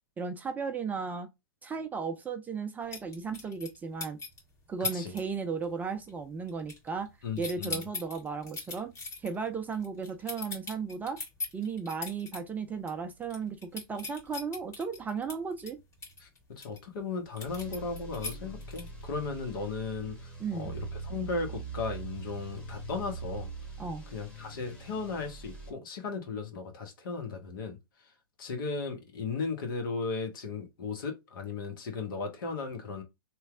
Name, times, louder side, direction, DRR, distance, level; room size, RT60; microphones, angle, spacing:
voice 1, 0.2-1.3 1.6-4.2 4.7-7.1 7.4-8.9 9.2-11.2 11.5-15.8 20.4-20.7 23.8-24.0, right 5 dB, 15° right, 0.4 m, -35 dB
sound 1, 2.9-4.4 4.8-5.2 5.5-5.8 6.1-7.1 7.4-12.4 12.8-12.9 13.2-16.8 17.4-19.0, left 3 dB, 25° left, 1.8 m, -39 dB
voice 2, 7.2-7.8 16.2-23.5 24.1-27.8 28.4-33.0, left 4 dB, 60° left, 1.2 m, -36 dB
sound 2, 17.4-25.7, right 4 dB, 5° left, 1.2 m, -42 dB
3.1 x 2.3 x 3.5 m
hypercardioid pair, 110°, 12 cm